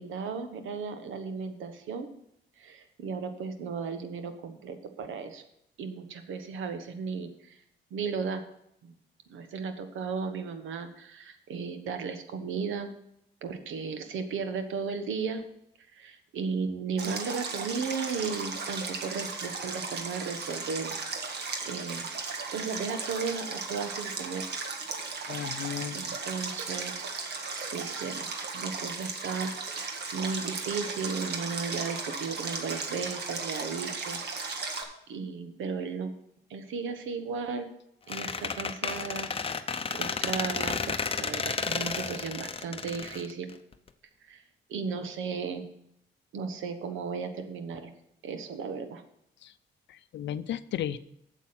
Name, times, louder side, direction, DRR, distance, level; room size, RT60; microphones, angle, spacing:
voice 1, 0.0-2.1 2.6-5.4 5.8-7.6 7.9-8.4 8.8-8.9 9.3-13.0 13.4-15.4 15.9-21.0 21.6-22.1 22.5-24.5 25.9-27.1 27.5-28.3 28.5-34.6 35.1-36.1 36.5-37.7 38.1-39.3 39.9-43.5 44.3-44.4 44.7-45.7 46.3-47.9 48.2-49.0, right 5 dB, 85° right, 8 dB, 1.2 m, -35 dB
Stream, 17.0-34.8, right 4 dB, 55° right, 1.5 m, -36 dB
voice 2, 25.3-26.0 49.4-49.5 49.9-51.0, left 10 dB, 65° left, 13 dB, 0.6 m, -34 dB
Squeak, 38.1-43.9, left 5 dB, 30° left, 0.7 m, -32 dB
8.3 x 7.3 x 5.8 m, 0.75 s
cardioid pair, 90°, 20 cm